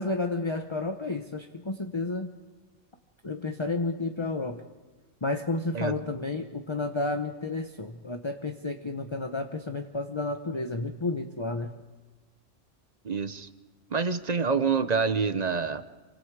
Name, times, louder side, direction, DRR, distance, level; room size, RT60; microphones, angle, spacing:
voice 1, 0.0-2.3 3.2-4.6 5.2-11.7, left 2 dB, 25° left, 5 dB, 1.0 m, -31 dB
voice 2, 13.0-13.5 13.9-15.9, right 5 dB, 40° right, 12 dB, 0.9 m, -27 dB
28.0 x 25.0 x 4.9 m, 1.3 s
omnidirectional pair, 1.2 m